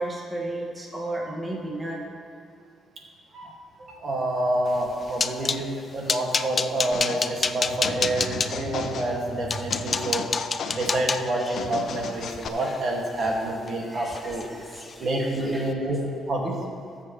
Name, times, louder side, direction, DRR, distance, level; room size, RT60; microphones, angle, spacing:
voice 1, 0.0-2.0 13.8-15.7, right 1 dB, 15° right, -2 dB, 1.7 m, -34 dB
voice 2, 3.9-10.3 10.7-14.5 15.0-16.0 16.3-16.6, right 1 dB, 50° right, -1 dB, 2.1 m, -28 dB
sound 1, 4.7-5.6 6.1-8.5 9.1-9.2 9.5-13.7 14.0-14.5 14.7-14.9 15.3-15.5, left 5 dB, 35° left, 0.4 m, -29 dB
sound 2, 6.9-7.3 7.8-9.1 9.7-11.0 11.6-12.5, left 5 dB, 65° left, 0.9 m, -35 dB
19.5 x 7.3 x 3.2 m, 2.4 s
cardioid pair, 90°, 0 cm